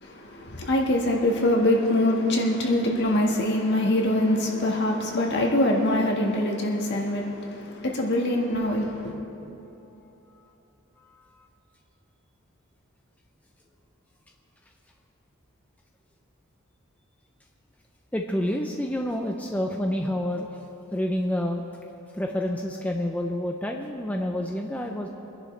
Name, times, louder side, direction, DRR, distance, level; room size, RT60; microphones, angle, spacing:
voice 1, 0.0-9.1, left 1 dB, 50° left, 1.7 m, -24 dB
voice 2, 11.0-11.5 18.1-20.5 20.9-21.7 22.1-25.1, left 1 dB, 5° left, 0.5 m, -28 dB
24.5 x 11.0 x 3.3 m
head